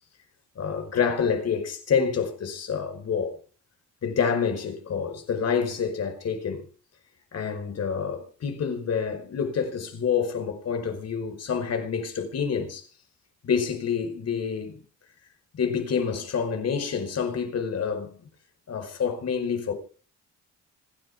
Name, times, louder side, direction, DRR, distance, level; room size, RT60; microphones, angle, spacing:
voice 1, 0.5-3.3 4.0-6.6 7.3-12.8 13.4-14.8 15.5-18.2 18.7-19.7, left 6 dB, 55° left, 5.0 m, -27 dB
26.5 x 11.0 x 3.7 m
cardioid pair, 90°, 30 cm